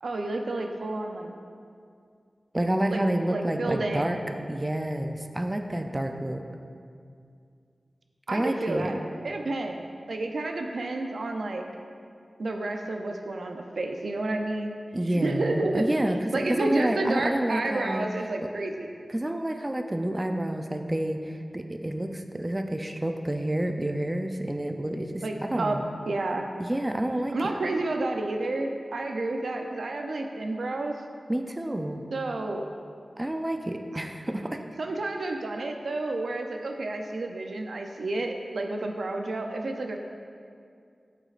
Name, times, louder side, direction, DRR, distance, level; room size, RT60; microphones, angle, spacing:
voice 1, 0.0-1.3 2.9-3.0 3.3-4.1 8.3-8.9 9.2-9.8 10.1-11.6 12.4-14.8 15.2-18.9 25.2-25.8 26.1-26.5 27.3-31.0 32.1-32.7 34.8-40.0, right 2 dB, 85° right, 3 dB, 0.4 m, -30 dB
voice 2, 2.5-4.2 4.5-6.4 8.3-9.0 14.9-18.1 18.4-18.5 19.1-25.9 26.6-27.4 31.3-32.1 33.2-34.7, right 1 dB, 20° right, 5 dB, 0.4 m, -29 dB
8.2 x 8.0 x 2.4 m, 2.3 s
wide cardioid pair, 80°, 0 cm